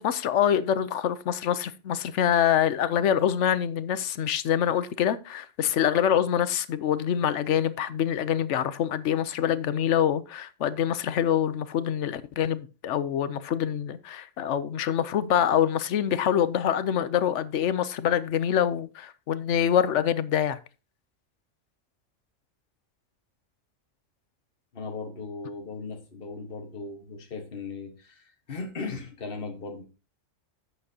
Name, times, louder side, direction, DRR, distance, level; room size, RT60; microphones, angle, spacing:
voice 1, 0.0-20.6, left 9 dB, 70° left, 1.0 m, -25 dB
voice 2, 24.7-29.8, left 4 dB, 50° left, 1.5 m, -37 dB
11.5 x 8.0 x 2.8 m
omnidirectional pair, 1.3 m